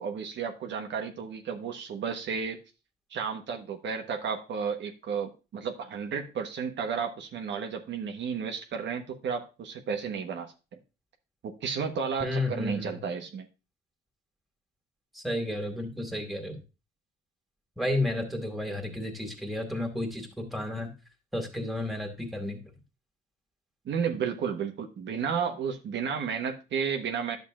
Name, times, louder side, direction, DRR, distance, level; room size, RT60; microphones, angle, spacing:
voice 1, 0.0-2.6 3.1-10.5 11.4-13.5 23.8-27.4, right 6 dB, 65° right, 4 dB, 1.3 m, -32 dB
voice 2, 12.2-13.0 15.1-16.6 17.8-20.9 21.3-22.6, left 1 dB, ahead, 2 dB, 2.3 m, -32 dB
10.5 x 6.7 x 2.5 m, 0.30 s
cardioid pair, 90°, 20 cm